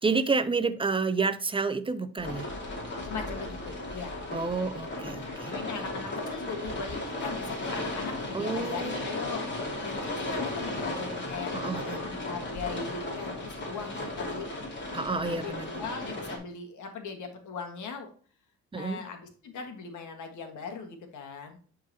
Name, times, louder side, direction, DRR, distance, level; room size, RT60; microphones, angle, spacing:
voice 1, 0.0-2.5 4.3-5.5 8.3-9.1 11.5-12.1 14.9-15.7 18.7-19.1, right 4 dB, 15° right, 0.5 m, -29 dB
sound 1, 2.2-16.4, left 2 dB, 40° left, 2.6 m, -35 dB
voice 2, 3.0-4.2 5.1-9.4 9.8-11.5 12.1-14.5 15.3-18.1 18.7-21.6, left 5 dB, 75° left, 1.7 m, -39 dB
10.5 x 3.9 x 2.8 m
cardioid pair, 90°, 30 cm